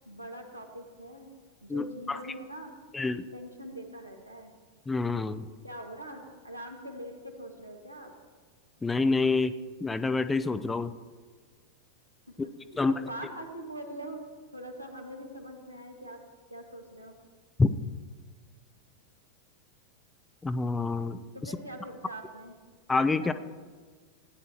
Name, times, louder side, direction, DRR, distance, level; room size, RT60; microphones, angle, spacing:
voice 1, 0.1-1.3 1.6-2.7 3.3-4.5 5.6-8.1 12.3-14.2 14.5-16.2 16.5-17.1 21.3-22.5 23.2-23.3, right 1 dB, 90° right, 2 dB, 1.7 m, -43 dB
voice 2, 1.7-2.2 2.9-3.2 4.9-5.5 8.8-9.5 9.8-10.9 12.4-12.5 12.8-12.9 17.6-17.7 20.4-21.2 22.9-23.3, left 3 dB, 10° left, 12 dB, 0.5 m, -27 dB
17.0 x 10.0 x 2.9 m, 1.5 s
figure-of-eight pair, 90°, 0 cm